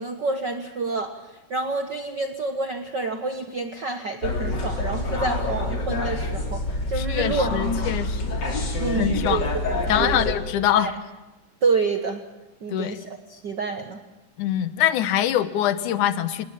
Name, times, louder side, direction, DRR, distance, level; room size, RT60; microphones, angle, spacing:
voice 1, 0.0-6.6 6.9-7.5 7.8-7.9 8.8-10.2 10.7-10.9 11.6-12.2 12.6-14.0, right 3 dB, 90° right, 7 dB, 0.9 m, -28 dB
sound 1, 4.2-10.3, left 2 dB, 30° left, 3.5 m, -27 dB
voice 2, 7.0-8.4 9.0-9.4 9.9-10.9 12.7-13.0 14.4-16.5, left 11 dB, 70° left, 13 dB, 2.4 m, -24 dB
27.5 x 19.5 x 7.3 m, 1.1 s
omnidirectional pair, 4.1 m